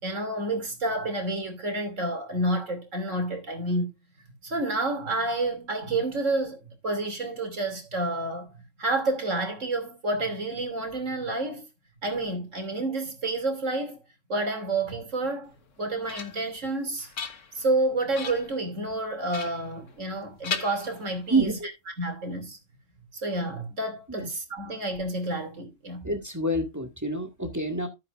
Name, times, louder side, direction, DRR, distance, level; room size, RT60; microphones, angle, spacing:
voice 1, 0.0-3.9 4.4-8.5 8.8-11.7 12.0-14.0 14.3-15.5 15.8-17.1 17.5-21.5 22.0-22.6 23.1-26.1, right 2 dB, 70° right, 3.2 m, -29 dB
sound 1, 15.6-16.6 17.0-17.8 18.1-18.6 19.3-20.2 20.4-21.4, left 6 dB, 70° left, 1.7 m, -37 dB
voice 2, 21.3-21.7 24.1-24.3 26.0-27.9, right 2 dB, 15° right, 1.9 m, -27 dB
13.5 x 7.9 x 2.5 m
omnidirectional pair, 1.3 m